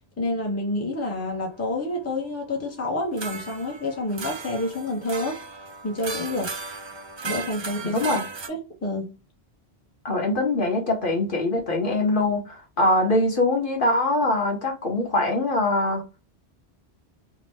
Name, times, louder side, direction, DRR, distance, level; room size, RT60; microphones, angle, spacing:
voice 1, 0.2-5.4 5.8-6.5 7.2-8.0 8.5-9.2, left 1 dB, 15° left, 0.7 m, -28 dB
sound 1, 1.0-2.0 3.2-8.5, right 4 dB, 45° right, 0.3 m, -36 dB
voice 2, 7.9-8.2 10.0-16.0, left 2 dB, 55° left, 1.0 m, -23 dB
2.8 x 2.1 x 3.3 m
omnidirectional pair, 1.1 m